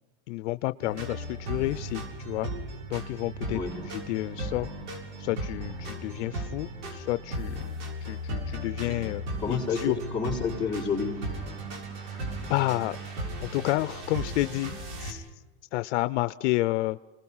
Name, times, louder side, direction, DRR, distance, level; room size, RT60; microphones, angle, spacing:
voice 1, 0.3-2.5 2.9-3.6 3.9-4.7 5.2-7.6 8.0-10.0 12.5-13.0 13.4-15.3 15.7-17.0, left 19 dB, 85° left, 14 dB, 0.6 m, -30 dB
sound 1, 0.8-15.1, right 1 dB, 75° right, 7.1 m, -36 dB
voice 2, 9.4-11.2, left 5 dB, 5° left, -8 dB, 4.3 m, -30 dB
29.5 x 19.5 x 5.6 m, 1.2 s
supercardioid pair, 140°, 35 cm